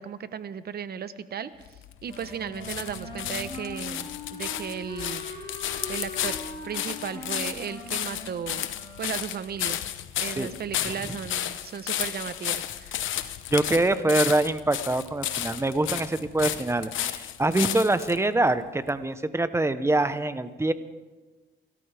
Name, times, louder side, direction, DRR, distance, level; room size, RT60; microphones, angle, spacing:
voice 1, 0.0-1.7 2.0-5.6 5.9-6.4 6.6-8.7 9.0-9.8 10.2-13.1, right 7 dB, 55° right, 13 dB, 1.0 m, -35 dB
sound 1, 1.6-18.2 18.9-19.0, left 11 dB, 75° left, 1.0 m, -33 dB
Wind instrument woodwind instrument, 2.1-9.4, left 2 dB, 25° left, 5.2 m, -41 dB
voice 2, 13.5-20.7, right 2 dB, 15° right, 11 dB, 1.0 m, -24 dB
29.0 x 13.5 x 3.5 m, 1.2 s
cardioid pair, 90°, 20 cm